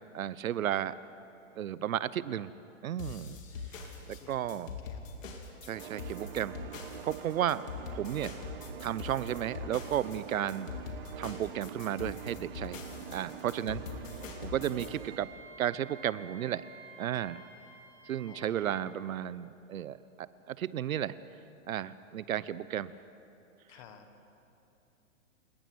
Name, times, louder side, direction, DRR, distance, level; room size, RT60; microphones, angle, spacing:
voice 1, 0.1-0.9 1.5-2.5 2.8-3.4 4.1-4.7 5.6-6.6 7.0-7.6 7.9-8.4 8.8-10.7 11.2-12.8 13.1-13.8 14.4-15.3 15.6-16.6 17.0-17.4 18.1-21.2 21.7-22.9, right 11 dB, 85° right, 17 dB, 0.9 m, -33 dB
sound 1, 3.0-14.9, left 5 dB, 70° left, 3.6 m, -43 dB
voice 2, 4.1-5.3 6.1-6.2 10.3-10.5 13.5-14.5 18.3-18.8 23.7-24.1, left 8 dB, 25° left, 7 dB, 1.4 m, -55 dB
sound 2, 5.7-15.2, right 10 dB, 40° right, 0.6 m, -46 dB
Wind instrument woodwind instrument, 14.7-18.8, right 3 dB, 15° right, 2.5 m, -52 dB
30.0 x 19.0 x 6.3 m, 2.8 s
hypercardioid pair, 170°, 40 cm